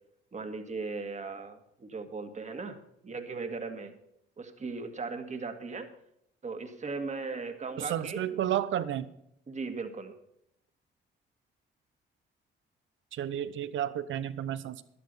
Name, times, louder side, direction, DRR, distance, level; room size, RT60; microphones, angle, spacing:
voice 1, 0.3-2.8 3.0-4.0 4.4-5.9 6.4-8.4 9.5-10.1, right 4 dB, 35° right, 6 dB, 1.8 m, -38 dB
voice 2, 7.8-9.1 13.1-14.8, right 11 dB, 75° right, 14 dB, 0.8 m, -32 dB
12.0 x 11.0 x 5.5 m, 0.76 s
cardioid pair, 85°, 20 cm